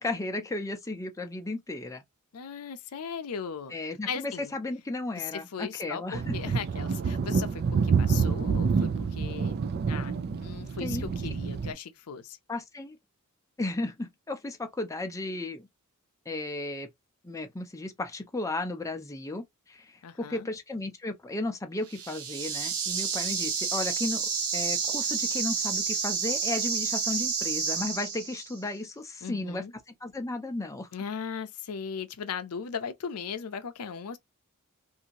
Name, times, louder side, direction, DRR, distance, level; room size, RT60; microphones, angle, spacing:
voice 1, 0.0-2.0 3.7-6.3 10.8-11.1 12.5-13.0 13.6-15.7 16.3-16.9 17.2-19.9 20.2-24.2 24.5-29.6 30.0-30.9, left 2 dB, 15° left, 0.5 m, -34 dB
voice 2, 2.3-3.7 4.1-4.6 5.1-9.6 9.9-12.4 20.0-20.5 29.2-29.7 30.9-34.2, left 6 dB, 80° left, 0.5 m, -38 dB
sound 1, 6.1-11.7, right 5 dB, 45° right, 0.3 m, -27 dB
sound 2, 21.9-28.6, right 6 dB, 80° right, 0.9 m, -30 dB
2.7 x 2.5 x 2.8 m
head